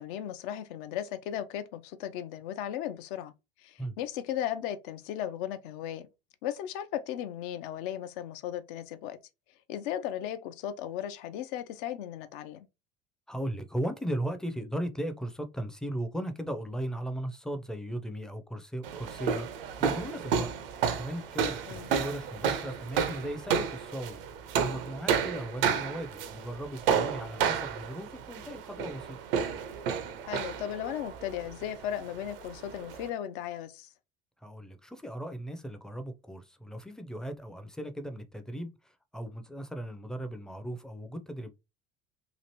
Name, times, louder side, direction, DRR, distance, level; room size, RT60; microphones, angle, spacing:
voice 1, 0.0-3.3 3.6-6.1 6.4-9.2 9.7-12.6 21.7-21.9 30.3-33.9, left 10 dB, 60° left, 0.6 m, -36 dB
voice 2, 13.3-20.5 21.0-24.2 24.6-29.2 34.4-38.7 39.1-41.5, right 1 dB, ahead, 0.5 m, -37 dB
sound 1, 18.8-33.1, right 7 dB, 70° right, 0.6 m, -32 dB
3.0 x 2.5 x 2.9 m
figure-of-eight pair, 65°, 29 cm